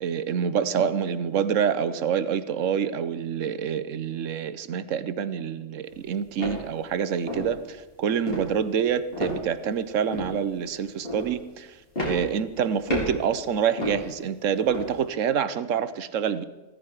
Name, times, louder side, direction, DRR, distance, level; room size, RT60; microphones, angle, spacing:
voice 1, 0.0-11.8 12.0-16.4, right 7 dB, 70° right, 14 dB, 1.1 m, -27 dB
sound 1, 5.9-6.0 6.4-6.6 7.3-7.6 8.3-8.6 9.1-9.7 10.1-10.4 11.0-11.3 12.0-12.6 12.9-13.3 13.8-14.1 14.7-14.9, left 1 dB, 45° left, 4.6 m, -30 dB
15.5 x 14.5 x 4.8 m, 1.1 s
omnidirectional pair, 1.4 m